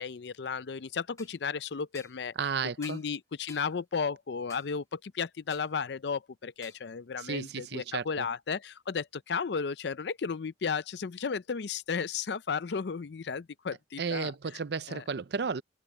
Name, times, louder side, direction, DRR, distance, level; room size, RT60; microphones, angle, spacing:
voice 1, 0.0-2.3 2.8-14.3 14.9-15.0, left 5 dB, 65° left, 0.5 m, -34 dB
sound 1, 1.2-1.4 1.9-2.2 2.8-3.1 3.5-3.7 4.5-4.7 5.5-5.7 6.6-6.8, left 3 dB, 20° left, 1.5 m, -51 dB
voice 2, 2.4-3.0 7.2-8.3 14.0-15.6, right 5 dB, 65° right, 0.6 m, -33 dB
head